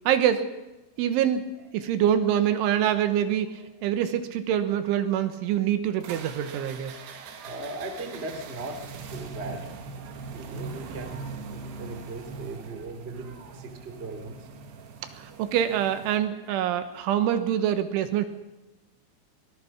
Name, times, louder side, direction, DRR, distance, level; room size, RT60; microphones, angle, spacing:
voice 1, 0.1-0.5 1.0-1.5 1.7-6.9 15.1-18.3, right 10 dB, 80° right, 9 dB, 3.6 m, -25 dB
sound 1, 6.0-16.2, right 4 dB, 65° right, 3.5 m, -41 dB
voice 2, 6.5-14.5 15.3-15.4, right 2 dB, 20° right, 5 dB, 1.6 m, -39 dB
24.0 x 19.0 x 5.9 m, 1.0 s
omnidirectional pair, 5.6 m